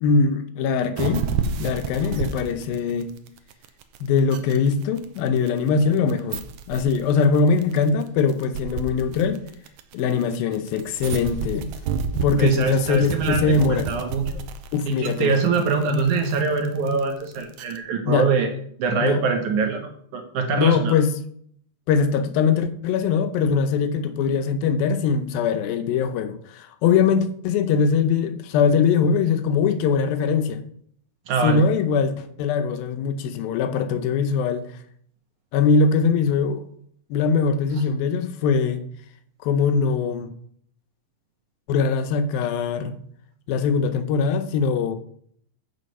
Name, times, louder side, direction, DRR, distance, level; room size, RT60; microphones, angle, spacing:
voice 1, 0.0-1.3 1.6-3.2 4.0-6.4 6.7-9.4 9.9-11.7 12.1-13.9 14.7-15.4 18.1-18.3 19.0-19.2 20.5-21.1 21.9-30.6 31.4-34.7 35.5-36.6 37.1-38.8 39.4-40.3 41.7-42.9 43.5-45.0, left 5 dB, 85° left, 2.6 m, -21 dB
sound 1, 1.0-17.8, right 6 dB, 80° right, 1.6 m, -30 dB
voice 2, 12.4-14.4 14.9-18.5 18.8-21.0 31.3-31.6, right 4 dB, 65° right, 2.5 m, -23 dB
8.5 x 6.3 x 5.4 m
omnidirectional pair, 4.1 m